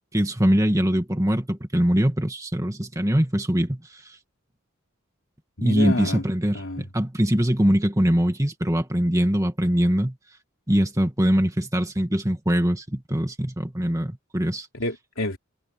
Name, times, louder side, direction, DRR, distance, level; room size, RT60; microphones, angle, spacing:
voice 1, 0.1-4.0 5.6-10.1 10.7-14.7, equal, 15° right, 2.0 m, -22 dB
voice 2, 5.6-6.2 6.5-6.8 14.7-15.4, left 1 dB, 70° left, 3.6 m, -28 dB
head